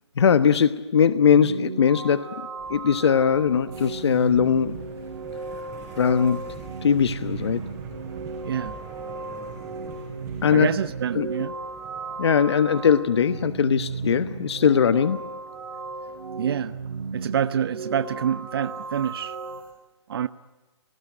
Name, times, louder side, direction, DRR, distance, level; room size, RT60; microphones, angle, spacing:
voice 1, 0.2-2.4 2.7-4.8 6.0-6.5 6.8-7.7 10.4-10.7 11.1-11.3 12.2-15.3, left 7 dB, 65° left, 1.1 m, -20 dB
sound 1, 1.3-19.6, right 4 dB, 85° right, 3.3 m, -35 dB
sound 2, 2.6-19.7, right 5 dB, 20° right, 7.1 m, -46 dB
voice 2, 10.5-11.5 16.4-16.8 17.1-19.4 20.1-20.3, right 9 dB, 55° right, 0.9 m, -27 dB
30.0 x 19.0 x 9.4 m
hypercardioid pair, 150°, 15 cm